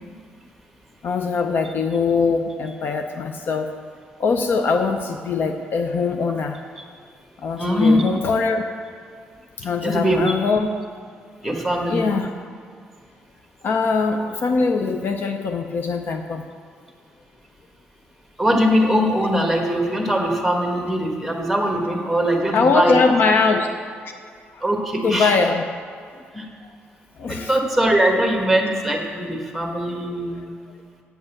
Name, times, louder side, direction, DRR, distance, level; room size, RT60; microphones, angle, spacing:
voice 1, 1.0-3.7 4.2-6.6 7.4-8.6 9.6-10.7 11.9-12.3 13.6-16.4 22.5-23.7 24.5-24.6 25.0-25.6 27.2-27.5, left 4 dB, 55° left, 5 dB, 0.6 m, -22 dB
voice 2, 7.6-8.0 9.8-10.2 11.4-12.2 18.4-23.1 24.6-25.3 26.3-26.5 27.3-30.5, equal, ahead, 1 dB, 1.4 m, -21 dB
8.9 x 5.4 x 7.1 m, 2.1 s
cardioid pair, 110°, 4 cm